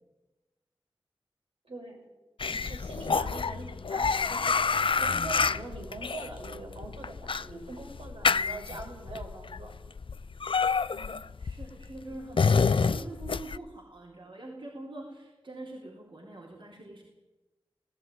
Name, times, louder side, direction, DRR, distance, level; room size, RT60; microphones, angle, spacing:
voice 1, 1.6-2.1 2.5-4.7 5.0-9.7, right 2 dB, 85° right, 0 dB, 5.9 m, -43 dB
sound 1, 2.4-13.6, left 5 dB, 65° left, 0.6 m, -28 dB
voice 2, 10.9-17.0, right 2 dB, 60° right, -2 dB, 4.0 m, -44 dB
17.5 x 16.0 x 9.5 m, 1.1 s
wide cardioid pair, 50°, 10 cm